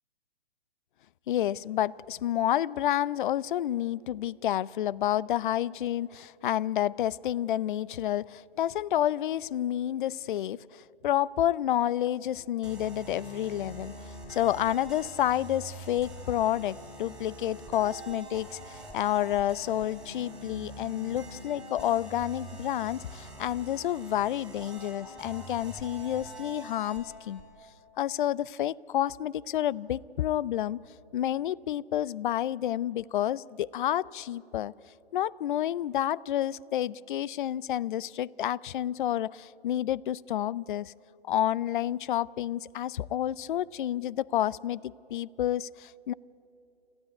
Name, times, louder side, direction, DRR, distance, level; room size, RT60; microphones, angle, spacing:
voice 1, 1.3-13.9 14.3-27.4 28.0-30.8 31.1-34.7 35.1-40.9 41.3-46.1, left 12 dB, 50° left, 0.5 m, -29 dB
sound 1, 12.6-27.4, right 1 dB, ahead, 4.5 m, -45 dB
27.0 x 15.5 x 9.4 m
hypercardioid pair, 135°, 32 cm